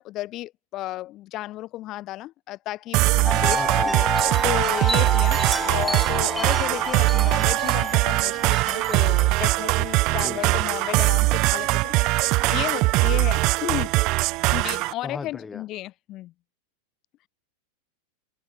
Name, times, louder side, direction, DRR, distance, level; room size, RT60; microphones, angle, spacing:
voice 1, 0.0-3.9 4.4-13.9 14.5-16.3, left 16 dB, 35° left, 3.6 m, -33 dB
sound 1, 2.9-14.9, right 23 dB, 40° right, 1.3 m, -21 dB
Wind chime, 3.2-9.8, right 1 dB, ahead, 0.4 m, -29 dB
voice 2, 3.5-4.4 10.1-10.6 15.0-15.6, left 4 dB, 15° left, 2.8 m, -37 dB
figure-of-eight pair, 90°, 0 cm